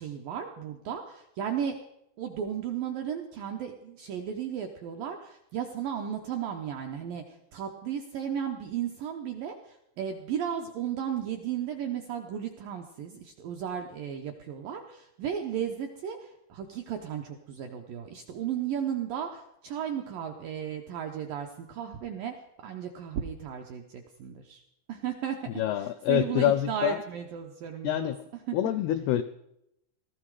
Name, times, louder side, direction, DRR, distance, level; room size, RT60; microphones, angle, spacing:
voice 1, 0.0-1.8 2.2-24.6 24.9-25.4 25.8-28.1 28.5-28.6, right 9 dB, 80° right, 4 dB, 2.0 m, -35 dB
voice 2, 25.6-27.0 27.8-28.2 28.5-29.2, left 12 dB, 85° left, 12 dB, 2.2 m, -26 dB
18.5 x 14.0 x 4.8 m, 0.80 s
omnidirectional pair, 5.3 m